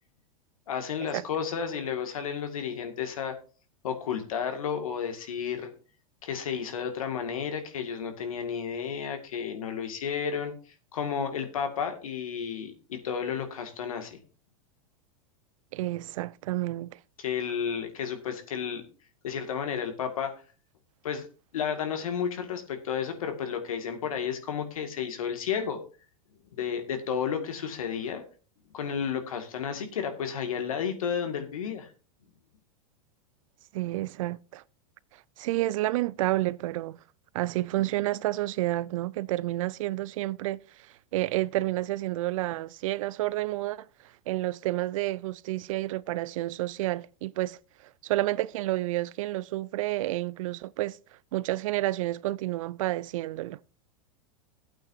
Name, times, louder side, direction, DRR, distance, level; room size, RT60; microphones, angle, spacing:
voice 1, 0.7-3.4 3.8-5.7 6.2-10.5 10.9-14.2 17.2-18.8 19.2-20.3 21.0-21.3 21.5-25.8 26.5-28.2 28.7-31.9, left 7 dB, 85° left, 2.1 m, -32 dB
voice 2, 15.7-17.0 33.7-34.6 35.4-37.0 37.3-40.9 41.1-43.9 44.3-47.6 48.0-51.0 51.3-53.6, right 17 dB, 70° right, 0.5 m, -30 dB
15.5 x 8.7 x 2.7 m
hypercardioid pair, 120°, 17 cm